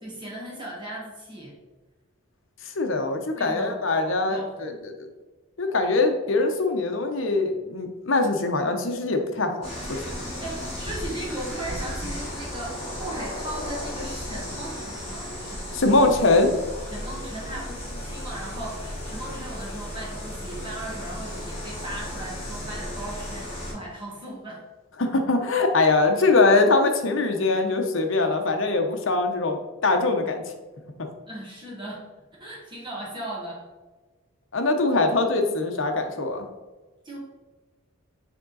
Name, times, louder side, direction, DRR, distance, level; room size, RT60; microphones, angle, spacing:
voice 1, 0.0-1.5 3.4-4.7 10.2-16.0 16.9-24.6 31.3-32.0 32.4-33.6 37.0-37.2, right 1 dB, 20° right, -5 dB, 1.7 m, -37 dB
voice 2, 2.6-4.9 5.6-10.0 15.7-16.5 25.0-30.4 34.5-36.5, left 3 dB, 65° left, 5 dB, 0.8 m, -22 dB
sound 1, 9.6-23.7, left 1 dB, 30° left, 2.1 m, -35 dB
7.2 x 3.6 x 4.0 m, 1.2 s
head